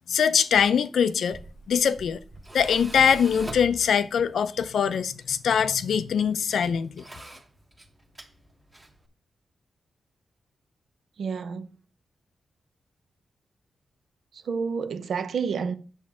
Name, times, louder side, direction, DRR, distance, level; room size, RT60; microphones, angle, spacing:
voice 1, 0.1-1.4 1.7-2.2 2.5-7.0, left 7 dB, 70° left, 0.5 m, -23 dB
Tools, 1.1-9.1, right 1 dB, 15° right, 1.1 m, -45 dB
voice 2, 11.2-11.7 14.5-15.7, right 5 dB, 65° right, 0.7 m, -29 dB
8.6 x 7.1 x 3.7 m
wide cardioid pair, 170°, 0 cm